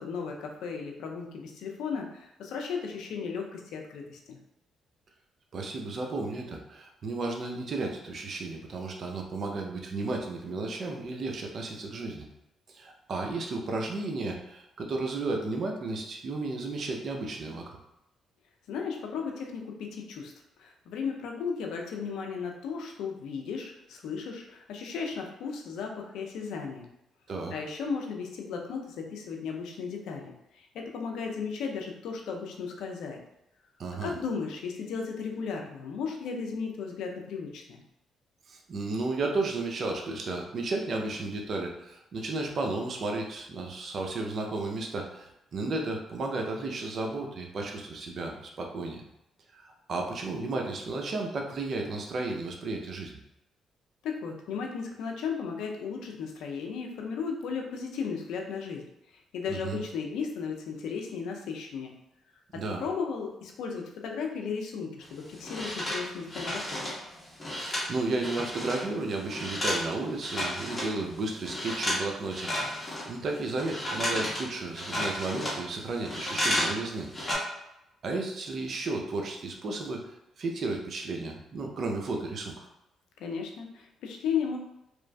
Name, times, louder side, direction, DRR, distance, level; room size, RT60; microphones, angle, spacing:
voice 1, 0.0-4.4 18.7-26.9 27.5-33.2 34.0-37.8 54.0-58.8 59.3-61.9 62.5-66.8 83.2-84.6, left 5 dB, 85° left, 2 dB, 0.5 m, -35 dB
voice 2, 5.5-12.3 12.7-17.8 27.3-27.5 33.8-34.1 38.5-49.0 49.5-53.1 59.5-59.8 62.5-62.9 67.6-72.5 73.1-77.1 78.0-82.7, right 3 dB, 55° right, 2 dB, 0.5 m, -33 dB
sound 1, 65.0-68.9 69.1-71.0 71.4-72.0 72.3-76.8 77.0-77.4, left 1 dB, 20° left, 1.2 m, -32 dB
3.0 x 2.4 x 2.2 m, 0.87 s
cardioid pair, 90°, 0 cm